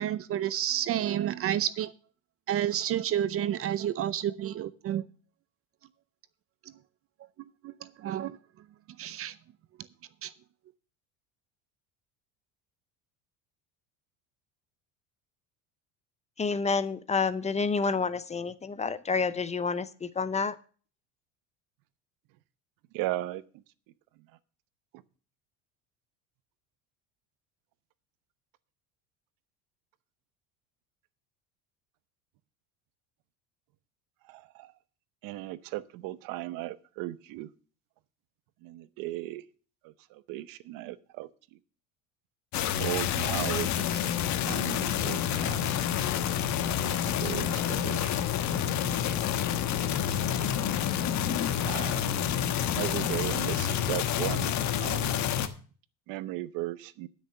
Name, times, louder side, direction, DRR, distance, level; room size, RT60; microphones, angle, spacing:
voice 1, 0.0-1.9 2.5-5.0 7.4-8.4 9.0-9.4 10.2-10.3, right 11 dB, 40° right, 0.6 m, -30 dB
voice 2, 16.4-20.6, left 4 dB, 20° left, 0.6 m, -29 dB
voice 3, 22.9-23.4 34.3-34.7 35.2-37.5 38.6-39.4 39.8-41.3 42.8-44.1 44.5-45.7 46.8-48.1 51.6-52.1 52.7-54.5 54.8-55.2 56.1-57.1, right 16 dB, 65° right, 0.9 m, -36 dB
sound 1, 42.5-55.5, left 9 dB, 50° left, 1.3 m, -28 dB
11.5 x 6.5 x 6.7 m
supercardioid pair, 115°, 36 cm